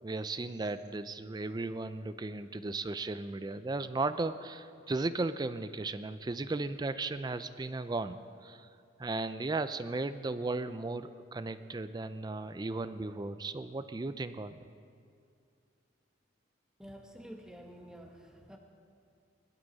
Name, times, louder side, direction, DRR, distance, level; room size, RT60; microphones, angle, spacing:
voice 1, 0.0-8.7 9.0-14.6, right 3 dB, 20° right, 12 dB, 0.4 m, -36 dB
voice 2, 16.8-18.6, equal, 5° right, 1 dB, 1.2 m, -49 dB
20.5 x 12.0 x 4.0 m, 2.4 s
head